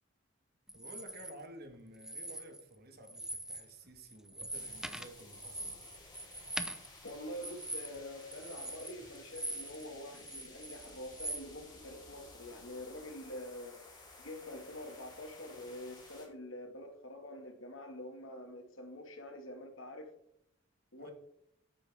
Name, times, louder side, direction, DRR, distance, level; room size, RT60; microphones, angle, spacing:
sound 1, 0.7-1.3 1.9-2.8 3.0-3.7 4.0-9.9 10.1-11.4, right 1 dB, 5° right, 0.7 m, -42 dB
voice 1, 0.7-5.8 21.0-21.1, right 1 dB, 50° right, 1.7 m, -53 dB
sound 2, 4.5-16.3, left 2 dB, 20° left, 3.5 m, -55 dB
sound 3, 6.6-13.8, right 1 dB, 80° right, 4.6 m, -65 dB
voice 2, 7.0-13.8 14.2-20.1 20.9-21.1, left 1 dB, 75° left, 2.1 m, -46 dB
12.5 x 9.3 x 3.6 m
head